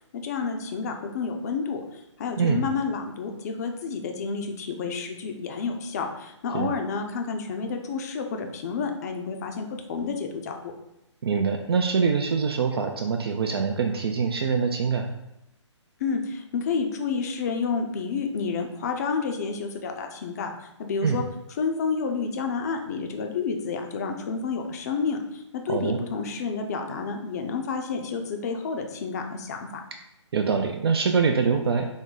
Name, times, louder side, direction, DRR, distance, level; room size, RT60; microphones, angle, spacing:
voice 1, 0.1-10.7 16.0-20.5 20.8-21.2 21.6-29.7, left 5 dB, 35° left, 4 dB, 0.5 m, -30 dB
voice 2, 11.2-15.1 21.0-21.2 25.7-26.0 30.3-31.8, right 5 dB, 55° right, 5 dB, 0.4 m, -24 dB
3.9 x 2.0 x 3.8 m, 0.86 s
figure-of-eight pair, 145°, 16 cm